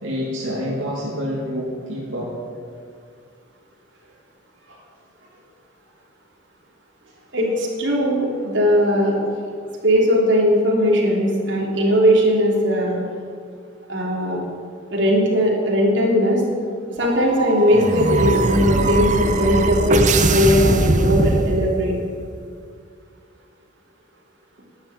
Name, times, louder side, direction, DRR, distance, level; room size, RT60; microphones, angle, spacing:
voice 1, 0.0-2.3 4.7-4.8, equal, 85° right, -5 dB, 2.6 m, -27 dB
voice 2, 7.3-9.2 9.8-13.0 13.9-14.4 14.9-16.4 17.0-21.9, equal, 65° right, -3 dB, 3.3 m, -18 dB
sound 1, 17.0-22.0, right 2 dB, 40° right, 0.8 m, -20 dB
12.0 x 9.2 x 8.7 m, 2.2 s
head